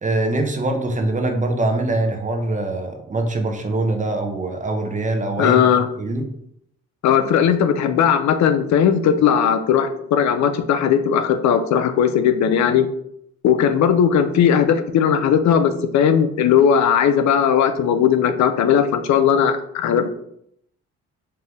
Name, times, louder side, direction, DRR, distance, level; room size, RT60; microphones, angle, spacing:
voice 1, 0.0-5.6 6.0-6.2, right 2 dB, 25° right, 4 dB, 0.7 m, -23 dB
voice 2, 5.4-5.9 7.0-12.9 13.4-20.1, left 8 dB, 65° left, 9 dB, 0.5 m, -17 dB
4.5 x 2.5 x 3.4 m, 0.72 s
cardioid pair, 90°, 30 cm